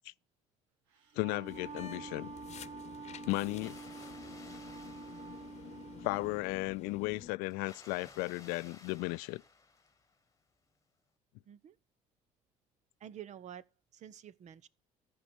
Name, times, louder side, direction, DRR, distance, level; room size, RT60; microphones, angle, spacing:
Wind instrument woodwind instrument, 0.9-6.4, right 5 dB, 85° right, 1.7 m, -47 dB
voice 1, 1.2-2.3 3.3-3.8 6.0-9.4, left 23 dB, 75° left, 0.5 m, -35 dB
sound 1, 1.5-7.3, left 9 dB, 45° left, 1.0 m, -50 dB
Water, 3.4-6.3 7.5-10.3, left 4 dB, 20° left, 1.3 m, -57 dB
voice 2, 11.5-11.8 13.0-13.6 13.9-14.7, right 10 dB, 50° right, 0.8 m, -49 dB
13.5 x 5.4 x 6.2 m
hypercardioid pair, 70°, 16 cm